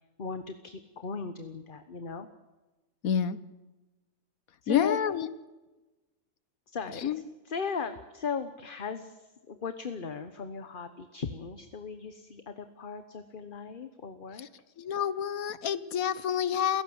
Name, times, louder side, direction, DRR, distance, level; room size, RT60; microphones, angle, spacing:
voice 1, 0.2-2.3 4.6-5.0 6.7-7.1 7.4-14.5, left 5 dB, 40° left, 9 dB, 1.2 m, -37 dB
voice 2, 3.0-3.4 4.7-5.3 7.0-7.2 14.8-16.8, left 8 dB, 75° left, 16 dB, 1.5 m, -28 dB
28.5 x 16.0 x 7.9 m, 1.2 s
omnidirectional pair, 1.5 m